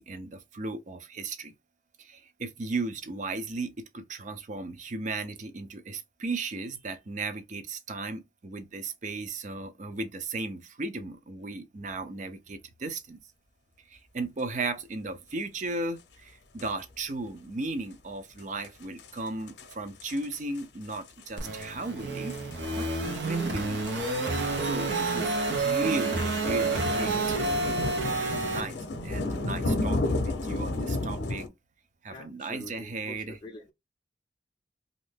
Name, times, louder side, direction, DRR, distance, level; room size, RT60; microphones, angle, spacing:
voice 1, 0.0-1.5 2.0-13.2 13.9-22.4 22.7-23.9 24.6-27.9 28.4-31.5 32.0-33.4, right 3 dB, 45° right, 0.5 m, -36 dB
sound 1, 16.6-16.7 18.4-18.5 18.6-18.7 19.0-19.1 19.5-19.7 20.0-20.6 20.9-21.2 21.5-21.7 22.3-31.5, left 2 dB, 75° left, 0.6 m, -32 dB
sound 2, 21.4-28.6, right 3 dB, 85° right, 0.8 m, -29 dB
voice 2, 32.1-33.7, left 1 dB, 25° left, 0.4 m, -45 dB
2.7 x 2.5 x 3.5 m
head